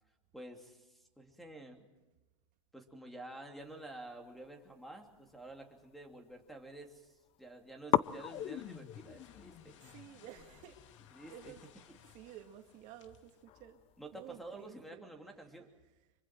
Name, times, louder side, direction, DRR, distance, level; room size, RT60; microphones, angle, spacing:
voice 1, 0.3-1.9 2.7-9.7 11.1-11.5 14.0-15.7, right 1 dB, ahead, 4 dB, 2.8 m, -50 dB
sound 1, 4.3-6.1 6.4-7.1 7.3-7.4 7.9-14.7, left 13 dB, 35° left, 0.6 m, -40 dB
sound 2, 8.0-13.4, left 9 dB, 70° left, 1.8 m, -62 dB
voice 2, 9.7-10.8 11.3-11.6 12.1-13.8 14.1-15.0, right 11 dB, 50° right, 5 dB, 2.1 m, -53 dB
25.0 x 24.0 x 4.6 m, 1.1 s
hypercardioid pair, 105°, 16 cm